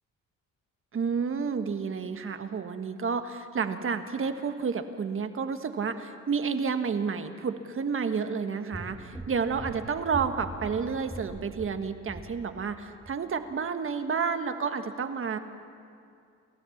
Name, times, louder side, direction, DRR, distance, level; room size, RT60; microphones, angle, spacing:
voice 1, 0.9-15.4, right 5 dB, 45° right, 8 dB, 1.5 m, -30 dB
sound 1, 8.7-12.7 13.0-13.2, right 1 dB, 5° right, 2.0 m, -42 dB
29.0 x 13.5 x 7.3 m, 2.4 s
cardioid pair, 90°, 30 cm